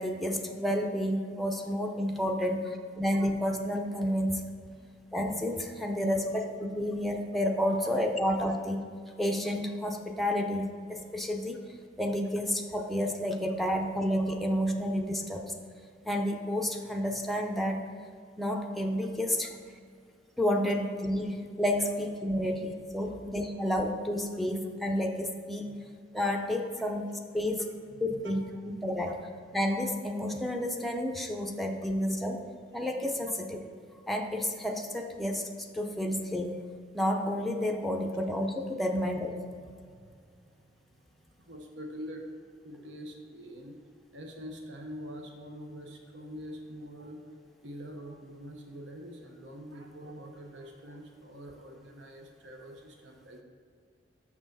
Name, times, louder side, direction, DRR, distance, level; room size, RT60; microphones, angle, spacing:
voice 1, 0.0-2.7 3.0-4.4 5.1-8.9 9.2-11.6 12.0-15.5 16.0-17.8 18.4-19.5 20.4-25.7 26.1-27.7 28.0-29.2 29.5-32.4 32.7-33.7 34.1-36.6 36.9-39.3, equal, ahead, 2 dB, 0.5 m, -30 dB
voice 2, 4.7-5.0 23.0-23.2 25.6-25.8 27.9-28.6 39.6-41.0 41.4-42.2 42.6-43.8 44.1-47.4 47.6-53.4, equal, 75° right, 2 dB, 0.9 m, -45 dB
6.4 x 6.0 x 4.0 m, 2.2 s
head